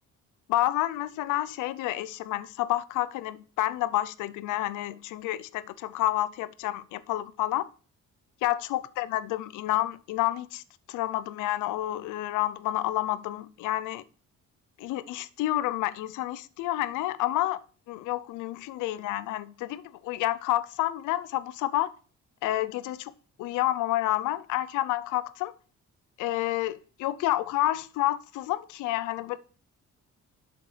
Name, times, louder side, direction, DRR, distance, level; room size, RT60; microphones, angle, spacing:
voice 1, 0.5-7.7 8.4-10.6 10.9-14.0 14.8-21.9 22.4-23.1 23.4-25.5 26.2-29.4, left 15 dB, 90° left, 0.5 m, -29 dB
11.0 x 7.0 x 3.2 m
cardioid pair, 90°, 30 cm